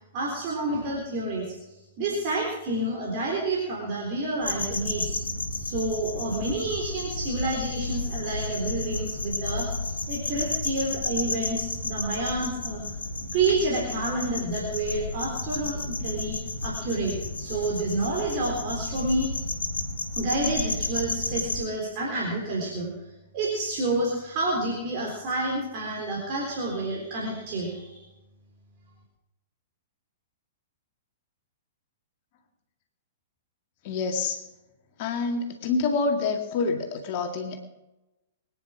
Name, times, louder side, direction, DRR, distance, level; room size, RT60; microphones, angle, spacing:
voice 1, 0.1-5.2 5.5-12.8 13.3-19.5 20.2-22.9 23.3-28.1, right 2 dB, 40° right, -2 dB, 3.8 m, -29 dB
sound 1, 4.4-21.6, left 2 dB, 70° left, 1.9 m, -32 dB
voice 2, 33.8-34.4 35.0-37.6, left 4 dB, 45° left, 4 dB, 2.1 m, -27 dB
22.5 x 10.0 x 5.0 m, 1.0 s
figure-of-eight pair, 110°, 0 cm